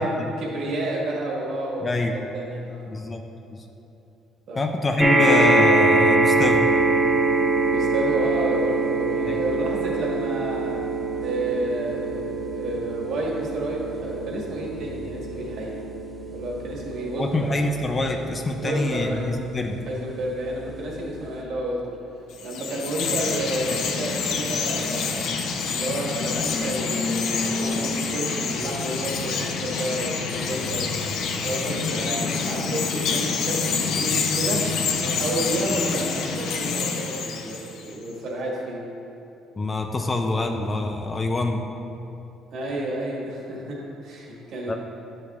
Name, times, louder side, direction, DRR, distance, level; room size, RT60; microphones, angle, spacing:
voice 1, 0.0-2.9 4.5-4.6 7.7-10.8 11.2-15.8 16.3-17.6 18.6-19.4 19.9-22.0 22.4-25.3 25.7-30.9 31.4-34.7 35.0-38.8 40.0-40.1 42.5-44.8, right 1 dB, 60° right, -3 dB, 1.7 m, -30 dB
voice 2, 1.8-2.1 2.9-3.2 3.5-3.6 4.6-6.7 9.3-9.4 17.2-19.8 37.9-38.0 39.6-41.6 44.7-44.8, left 2 dB, 25° left, 4 dB, 0.4 m, -26 dB
sound 1, 5.0-19.5 20.3-20.4 20.7-20.8, right 2 dB, ahead, 1.1 m, -23 dB
Chirp tweet, 22.3-37.9, left 5 dB, 75° left, 0.6 m, -27 dB
10.5 x 7.3 x 2.4 m, 2.8 s
cardioid pair, 140°, 0 cm